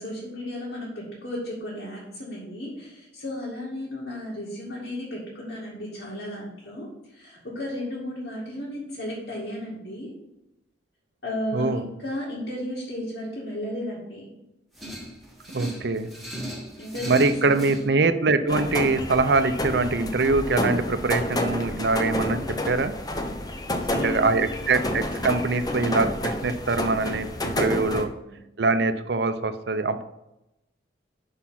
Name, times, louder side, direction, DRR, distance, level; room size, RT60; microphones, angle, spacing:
voice 1, 0.0-10.1 11.2-14.4 16.8-17.9 23.8-24.9 28.0-28.3, left 1 dB, 70° left, -7 dB, 2.2 m, -34 dB
voice 2, 11.5-11.8 15.5-16.1 17.1-22.4 22.6-22.9 23.9-28.1 28.6-30.0, right 3 dB, 60° right, 11 dB, 0.5 m, -23 dB
sound 1, 14.7-17.8, equal, ahead, 1.2 m, -37 dB
sound 2, 18.5-28.0, left 1 dB, 20° left, 0.6 m, -29 dB
6.2 x 5.6 x 5.7 m, 0.89 s
head